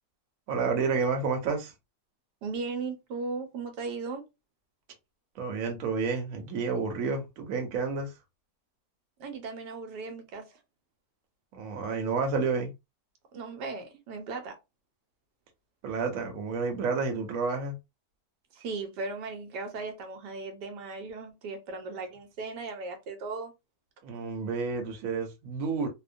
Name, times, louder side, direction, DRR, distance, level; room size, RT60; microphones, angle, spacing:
voice 1, 0.5-1.7 5.4-8.1 11.5-12.7 15.8-17.8 24.0-25.9, right 4 dB, 60° right, 1.0 m, -30 dB
voice 2, 2.4-4.2 9.2-10.6 13.3-14.6 18.5-23.5, right 4 dB, 80° right, 1.2 m, -37 dB
2.8 x 2.1 x 2.5 m
omnidirectional pair, 1.8 m